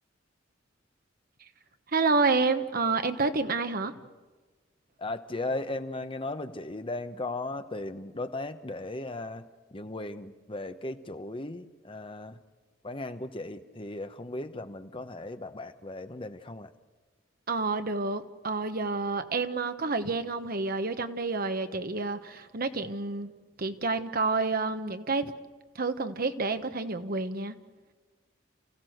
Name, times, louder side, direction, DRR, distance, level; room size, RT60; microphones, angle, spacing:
voice 1, 1.9-3.9 17.5-23.3 23.6-25.3 25.7-27.6, right 3 dB, 50° right, 9 dB, 1.1 m, -29 dB
voice 2, 5.0-12.4 12.8-16.7, left 2 dB, 25° left, 9 dB, 1.0 m, -37 dB
29.5 x 15.0 x 7.9 m, 1.3 s
head